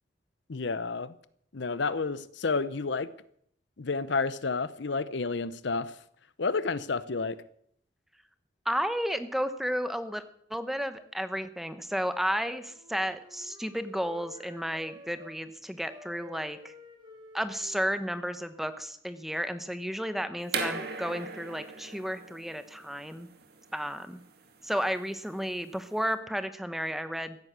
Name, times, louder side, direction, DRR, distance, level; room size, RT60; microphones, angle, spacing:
voice 1, 0.5-1.1 1.5-3.1 3.8-5.9 6.4-7.4, left 4 dB, 65° left, 0.7 m, -30 dB
voice 2, 8.6-10.2 10.5-16.7 17.3-23.3 23.7-24.2 24.6-27.4, equal, ahead, 0.8 m, -32 dB
Wind instrument woodwind instrument, 12.2-15.4 15.8-19.2, left 1 dB, 20° right, 4.6 m, -52 dB
sound 1, 20.5-26.1, right 4 dB, 55° right, 2.1 m, -39 dB
16.0 x 9.7 x 8.0 m
head